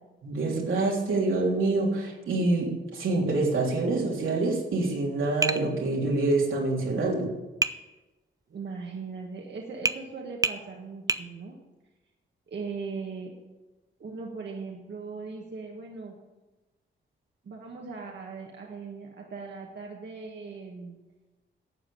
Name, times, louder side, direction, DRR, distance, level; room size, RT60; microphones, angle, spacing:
voice 1, 0.2-7.3, right 2 dB, 90° right, -2 dB, 3.4 m, -26 dB
Tap, 5.4-5.7 7.6-7.8 9.8-10.0 10.4-10.6 11.1-11.3, right 3 dB, 15° right, 0.6 m, -26 dB
voice 2, 8.5-11.6 12.5-13.3 14.0-16.2 17.4-21.0, right 4 dB, 60° right, 0 dB, 1.6 m, -39 dB
12.0 x 8.1 x 7.0 m, 1.1 s
cardioid pair, 90°, 20 cm